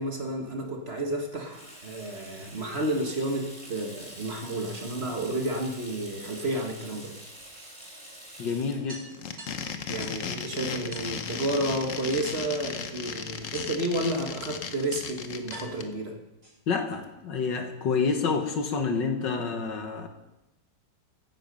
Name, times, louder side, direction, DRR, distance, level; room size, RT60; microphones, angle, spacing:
voice 1, 0.0-7.1 9.9-16.2, right 1 dB, 35° right, 2 dB, 1.8 m, -31 dB
Water tap faucet / Sink (filling or washing), 1.3-10.6, right 1 dB, 15° right, 3.2 m, -47 dB
sound 1, 7.4-7.5 7.9-8.0 8.3-8.4 8.9-10.3 10.9-11.2 12.1-12.7 13.5-14.0 14.8-14.9 15.5-16.9, right 1 dB, 70° right, 7.6 m, -47 dB
voice 2, 8.4-9.1 16.7-20.1, left 5 dB, 75° left, 6 dB, 2.0 m, -28 dB
sound 2, 9.1-15.8, left 6 dB, 50° left, 1.1 m, -35 dB
14.5 x 10.0 x 5.4 m, 0.94 s
omnidirectional pair, 2.0 m